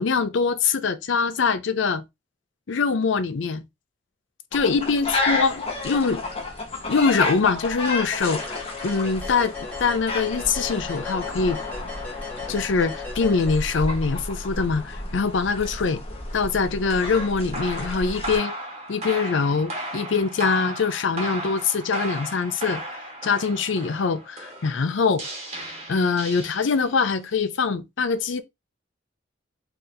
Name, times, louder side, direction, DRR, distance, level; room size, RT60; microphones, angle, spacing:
voice 1, 0.0-2.0 2.7-3.6 4.5-6.2 6.9-9.5 9.8-11.6 12.5-16.0 16.3-18.6 18.9-22.8 23.2-25.2 25.9-28.4, left 5 dB, 70° left, 0.5 m, -23 dB
sound 1, 4.5-18.4, left 2 dB, 30° left, 1.1 m, -31 dB
sound 2, 8.2-14.0, left 4 dB, 10° left, 1.3 m, -37 dB
sound 3, 16.9-27.0, right 1 dB, 35° right, 1.2 m, -35 dB
3.9 x 2.8 x 2.6 m
head